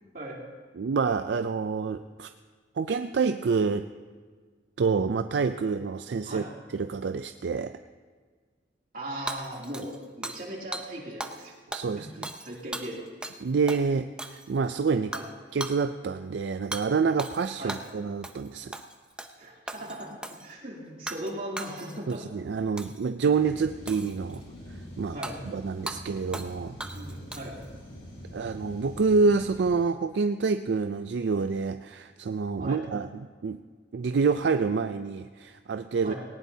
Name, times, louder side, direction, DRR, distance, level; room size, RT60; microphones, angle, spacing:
voice 1, 0.8-2.3 2.8-3.9 4.8-6.4 6.7-7.8 11.7-12.3 13.4-15.1 15.5-18.7 22.1-24.4 24.7-25.2 25.5-26.8 28.3-33.6 33.9-36.1, right 4 dB, 70° right, 9 dB, 0.4 m, -27 dB
voice 2, 8.9-9.9 10.2-11.5 11.9-13.1 15.1-15.3 17.6-17.8 19.4-22.3 25.1-25.4 26.8-27.5 32.6-32.8 36.0-36.2, right 1 dB, 45° right, -3 dB, 2.9 m, -38 dB
Hammer / Shatter, 9.3-10.5 10.7-10.9 11.2-11.4 11.7-13.4 13.7-13.8 14.2-14.6 15.1-15.3 15.6-15.8 16.7-16.8 17.2-17.9 18.2-18.5 18.7-19.3 19.7-20.5 21.1-21.3 21.6-22.2 22.8-23.1 23.9-24.4 25.2-25.3 25.9-26.0 26.3-26.5 26.8-27.6, right 1 dB, 5° right, 0.6 m, -38 dB
sound 1, 23.3-29.6, equal, 75° left, 5.5 m, -44 dB
19.0 x 18.0 x 2.8 m, 1.6 s
head